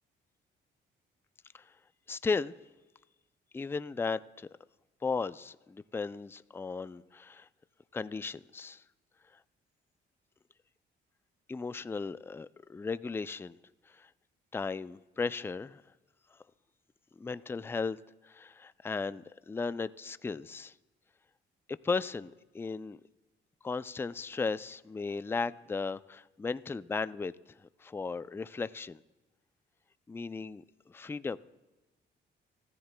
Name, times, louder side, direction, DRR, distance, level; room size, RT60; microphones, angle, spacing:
voice 1, 2.1-2.5 3.5-4.5 5.0-7.5 7.9-8.8 11.5-13.6 13.9-14.1 14.5-15.8 17.2-18.0 18.2-20.7 21.8-23.0 23.6-27.3 27.6-29.0 30.1-31.4, left 4 dB, 10° left, 15 dB, 0.3 m, -36 dB
24.5 x 13.5 x 2.2 m, 1.1 s
cardioid pair, 90°, 20 cm